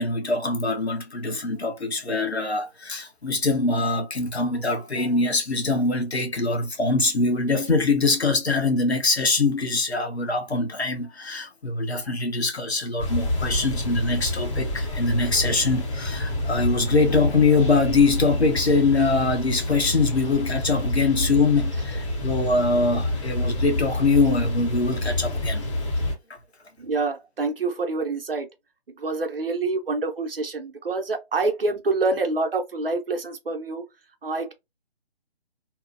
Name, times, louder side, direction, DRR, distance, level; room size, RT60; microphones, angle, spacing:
voice 1, 0.0-25.6, left 3 dB, 90° left, 0.9 m, -23 dB
sound 1, 13.0-26.1, left 1 dB, 30° left, 0.8 m, -28 dB
voice 2, 26.8-28.5 29.0-33.8 34.2-34.5, right 3 dB, 65° right, 0.7 m, -26 dB
2.8 x 2.1 x 2.5 m
figure-of-eight pair, 145°, 31 cm